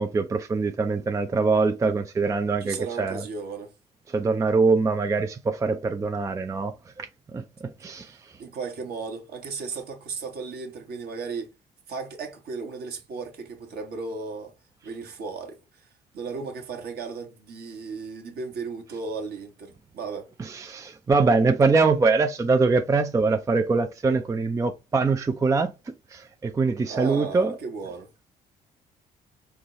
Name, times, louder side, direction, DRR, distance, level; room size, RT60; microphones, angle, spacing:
voice 1, 0.0-3.2 4.1-8.4 20.4-25.7 26.1-27.5, right 4 dB, 15° right, 0.4 m, -23 dB
voice 2, 2.6-3.7 8.4-11.5 11.9-14.5 14.8-20.3 26.9-28.1, right 4 dB, 50° right, 1.1 m, -35 dB
4.6 x 2.2 x 2.9 m
figure-of-eight pair, 50°, 21 cm